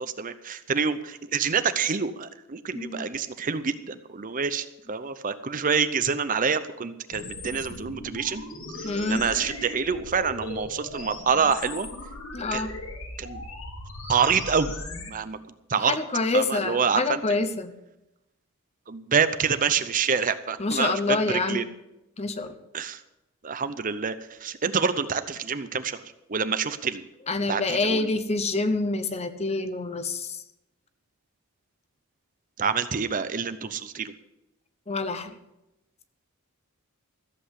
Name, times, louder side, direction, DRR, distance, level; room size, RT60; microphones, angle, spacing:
voice 1, 0.0-8.4 8.8-11.9 12.5-12.6 13.2-13.4 14.1-14.7 15.1-15.4 15.7-16.0 16.3-17.2 18.9-21.6 22.7-23.0 23.4-27.1 27.5-28.1 32.6-34.1, right 6 dB, 35° right, 12 dB, 0.6 m, -27 dB
voice 2, 2.7-3.1 8.8-9.3 12.3-12.7 15.9-17.8 20.6-21.7 22.2-22.5 27.3-30.4 34.9-35.3, left 3 dB, 30° left, 11 dB, 0.8 m, -27 dB
sound 1, 7.1-15.1, left 2 dB, 65° left, 2.7 m, -38 dB
14.5 x 7.8 x 8.2 m, 0.94 s
head